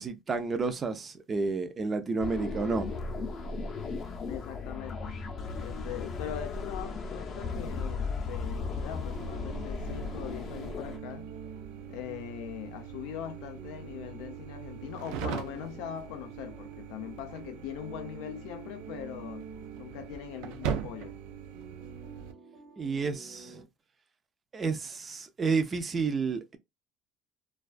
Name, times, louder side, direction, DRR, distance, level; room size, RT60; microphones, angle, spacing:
voice 1, 0.0-2.9 22.8-23.6 24.5-26.6, right 4 dB, 25° right, 0.4 m, -30 dB
sound 1, 2.2-11.0, left 4 dB, 40° left, 0.5 m, -36 dB
voice 2, 4.3-5.2 5.5-11.3 11.9-19.5 19.8-21.2, left 11 dB, 90° left, 0.5 m, -41 dB
sound 2, 6.8-23.6, right 3 dB, 55° right, 0.7 m, -50 dB
sound 3, 9.1-22.3, right 8 dB, 85° right, 0.4 m, -41 dB
2.3 x 2.3 x 2.4 m
cardioid pair, 140°, 0 cm